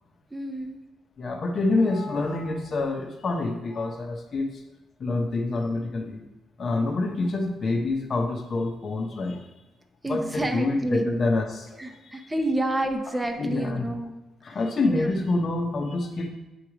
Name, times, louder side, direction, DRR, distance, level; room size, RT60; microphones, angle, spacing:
voice 1, 0.3-0.8 10.0-11.2 11.8-14.2 14.5-14.6 14.9-15.2, right 1 dB, 15° right, 4 dB, 0.8 m, -29 dB
voice 2, 1.2-4.6 5.0-6.2 6.6-9.5 10.1-11.8 12.2-12.3 13.4-13.9 14.4-16.3, left 2 dB, 45° left, 3 dB, 1.0 m, -27 dB
8.2 x 3.2 x 5.0 m, 1.0 s
cardioid pair, 90°, 0 cm